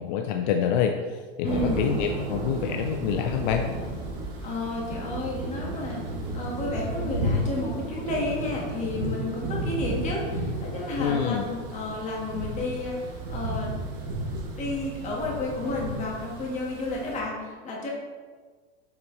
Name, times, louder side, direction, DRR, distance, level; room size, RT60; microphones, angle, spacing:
voice 1, 0.0-3.7 11.0-11.5, left 8 dB, 45° left, 4 dB, 0.5 m, -27 dB
voice 2, 1.4-2.0 4.4-6.0 6.3-13.7 14.6-17.9, left 2 dB, 20° left, -3 dB, 1.6 m, -31 dB
sound 1, 1.4-17.2, right 1 dB, 60° right, 2.1 m, -33 dB
7.9 x 5.9 x 3.2 m, 1.5 s
supercardioid pair, 160°, 32 cm